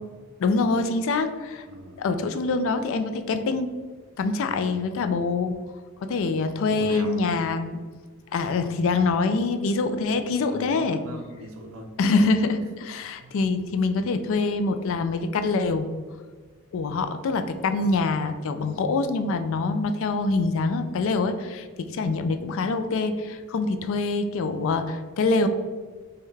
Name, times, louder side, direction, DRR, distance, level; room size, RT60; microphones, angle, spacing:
voice 1, 0.4-1.7 2.0-3.7 4.2-5.6 6.0-7.8 8.3-11.0 12.0-15.9 16.7-25.5, left 3 dB, 60° left, 9 dB, 0.3 m, -25 dB
voice 2, 1.7-2.0 4.5-4.6 6.7-7.1 10.4-11.9 13.2-13.3, right 1 dB, 65° right, 1 dB, 0.6 m, -40 dB
5.3 x 2.2 x 3.2 m, 1.5 s
head